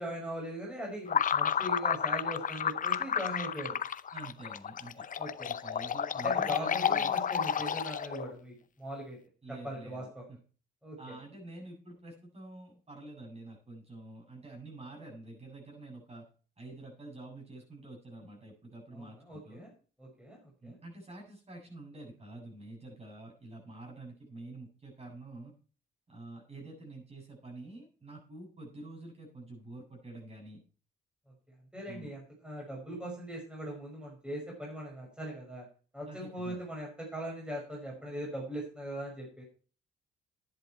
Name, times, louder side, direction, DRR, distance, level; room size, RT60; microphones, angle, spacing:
voice 1, 0.0-3.8 5.2-5.5 6.2-9.2 9.5-10.2 10.8-11.1 18.9-19.7 20.0-20.8 31.7-35.6 35.9-39.4, right 1 dB, 5° right, -2 dB, 5.6 m, -40 dB
sound 1, 1.1-8.3, left 8 dB, 40° left, 0.7 m, -31 dB
voice 2, 4.1-5.1 5.5-7.1 7.6-7.7 9.4-10.4 11.0-16.3 16.6-19.6 20.6-25.5 26.1-30.6 31.9-32.1 36.1-36.6, right 2 dB, 30° right, 0 dB, 7.8 m, -47 dB
10.5 x 10.5 x 4.5 m, 0.38 s
cardioid pair, 90°, 20 cm